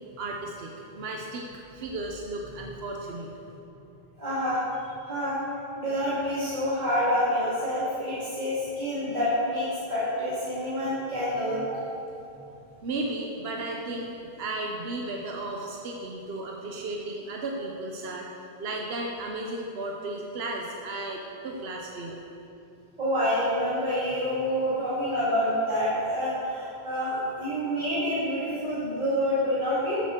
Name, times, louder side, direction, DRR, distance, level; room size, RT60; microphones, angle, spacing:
voice 1, 0.2-1.5 1.7-3.3 12.8-18.3 18.6-22.2, right 2 dB, 75° right, 0 dB, 1.1 m, -34 dB
voice 2, 4.2-4.6 4.9-5.4 5.8-11.8 23.0-30.0, equal, 45° right, -11 dB, 2.4 m, -27 dB
14.5 x 8.5 x 3.7 m, 2.8 s
omnidirectional pair, 1.1 m